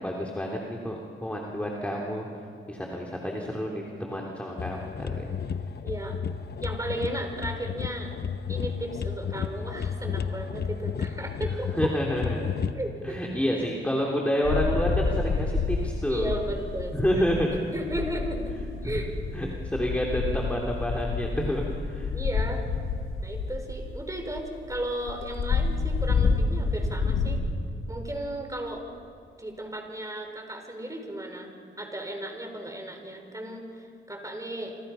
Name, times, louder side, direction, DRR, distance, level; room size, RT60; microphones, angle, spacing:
voice 1, 0.0-2.3 2.7-5.2 11.5-12.5 13.0-16.3 16.9-17.5 18.8-19.0 19.3-22.1, equal, 5° left, -1 dB, 3.3 m, -29 dB
sound 1, 4.6-12.7, left 7 dB, 50° left, 1.0 m, -32 dB
voice 2, 5.8-6.2 6.6-8.1 8.5-11.9 12.7-13.2 16.1-17.2 17.7-19.1 22.1-22.6 23.2-27.4 27.9-28.8 29.4-31.5 31.8-34.8, right 1 dB, 15° right, 3 dB, 5.2 m, -35 dB
sound 2, 14.4-17.6 17.8-27.4, left 4 dB, 85° left, 2.4 m, -29 dB
29.0 x 26.0 x 5.8 m, 2.3 s
cardioid pair, 75°, 21 cm